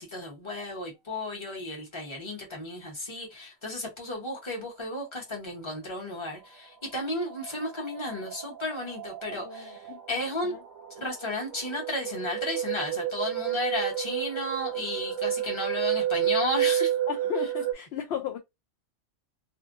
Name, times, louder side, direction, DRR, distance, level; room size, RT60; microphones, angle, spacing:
voice 1, 0.0-9.8 10.1-10.5 11.0-16.9, left 1 dB, 25° left, 1.0 m, -33 dB
sound 1, 6.4-6.5 6.8-17.7, right 11 dB, 80° right, 1.1 m, -31 dB
voice 2, 9.4-10.0 10.4-10.6 17.1-18.4, left 8 dB, 65° left, 0.7 m, -35 dB
2.6 x 2.5 x 2.5 m
omnidirectional pair, 1.4 m